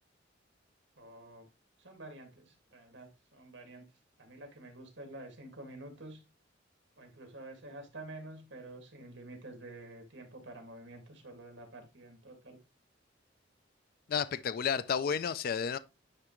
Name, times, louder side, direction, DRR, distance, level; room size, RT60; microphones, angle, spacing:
voice 1, 1.0-1.5 1.8-3.9 4.2-6.2 7.0-12.6, right 2 dB, 65° right, 2.1 m, -49 dB
voice 2, 14.1-15.8, left 7 dB, 50° left, 0.4 m, -31 dB
9.7 x 3.3 x 3.1 m
head